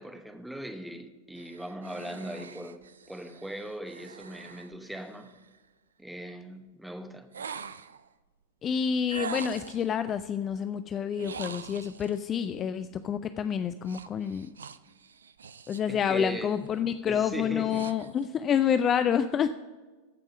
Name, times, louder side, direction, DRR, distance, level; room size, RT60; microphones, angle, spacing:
voice 1, 0.0-2.8 3.1-5.3 6.0-7.3 15.9-16.6 17.0-17.9, right 1 dB, 5° right, 1.0 m, -39 dB
sound 1, 1.3-5.6 7.3-8.1 9.1-9.9 11.1-12.2 13.8-15.9 16.3-16.7 17.2-18.3, right 6 dB, 70° right, 0.4 m, -43 dB
voice 2, 8.6-14.6 15.7-19.5, left 8 dB, 25° left, 0.4 m, -28 dB
14.5 x 5.4 x 5.9 m
figure-of-eight pair, 90°, 0 cm